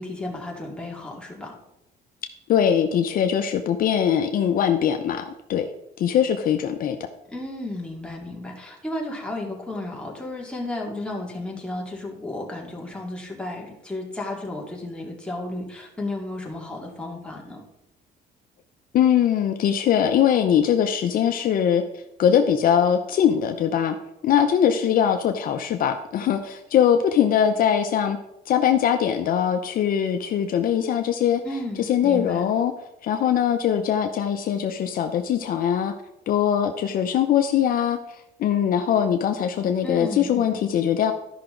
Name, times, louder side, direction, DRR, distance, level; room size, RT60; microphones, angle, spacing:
voice 1, 0.0-1.5 7.3-17.6 31.4-32.5 39.8-40.6, left 1 dB, 5° left, -2 dB, 2.4 m, -33 dB
voice 2, 2.5-5.7 6.0-7.0 18.9-21.8 22.2-24.0 24.2-28.2 28.5-31.4 31.8-32.7 33.0-35.9 36.3-38.0 38.4-41.1, left 9 dB, 55° left, 6 dB, 0.7 m, -21 dB
13.0 x 5.8 x 3.8 m, 0.87 s
cardioid pair, 110°, 17 cm